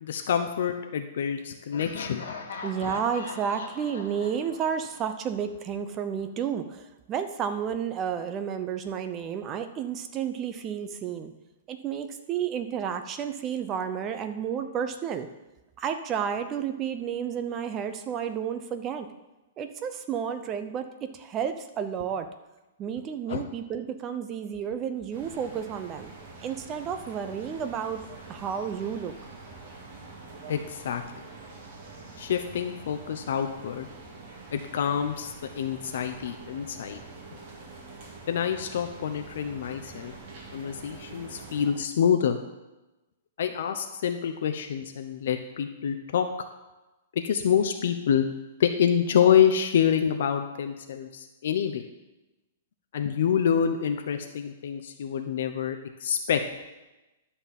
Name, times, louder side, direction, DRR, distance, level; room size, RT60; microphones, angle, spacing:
voice 1, 0.0-2.2 23.3-23.4 30.5-31.0 32.2-33.9 34.5-37.0 38.3-40.1 40.5-42.4 43.4-46.3 47.2-48.3 48.6-51.8 52.9-56.4, left 8 dB, 65° left, 6 dB, 0.8 m, -26 dB
Laughter, 1.7-5.6, left 4 dB, 85° left, 1.9 m, -41 dB
voice 2, 2.6-11.3 11.7-15.3 15.8-19.1 19.6-22.3 22.8-26.1 26.4-28.0 28.3-29.2, right 8 dB, 20° right, 9 dB, 0.6 m, -31 dB
sound 1, 25.1-41.7, right 3 dB, 40° right, 2.1 m, -45 dB
11.5 x 4.2 x 7.3 m, 1.0 s
hypercardioid pair, 165°, 0 cm